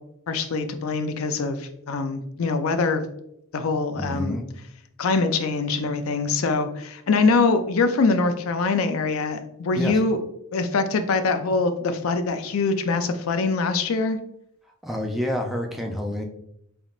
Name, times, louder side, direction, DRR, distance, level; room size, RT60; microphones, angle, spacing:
voice 1, 0.3-3.1 3.5-4.4 5.0-10.2 10.5-14.2, left 4 dB, 70° left, 8 dB, 0.4 m, -23 dB
voice 2, 3.9-4.5 9.8-10.0 14.8-16.2, left 1 dB, ahead, 2 dB, 0.4 m, -28 dB
3.8 x 3.5 x 2.4 m, 0.75 s
head